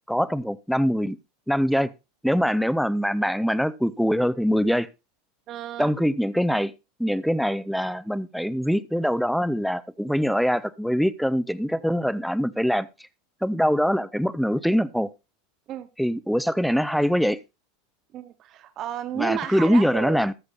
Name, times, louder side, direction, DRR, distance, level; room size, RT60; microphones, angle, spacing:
voice 1, 0.1-1.2 1.5-1.9 2.2-4.9 5.8-6.7 7.0-12.9 13.4-15.1 16.0-17.4 19.2-20.3, equal, ahead, 0.5 m, -23 dB
voice 2, 5.5-5.9 15.7-15.9 18.1-20.2, right 11 dB, 30° right, 0.8 m, -32 dB
13.5 x 13.5 x 2.4 m
supercardioid pair, 160°, 0 cm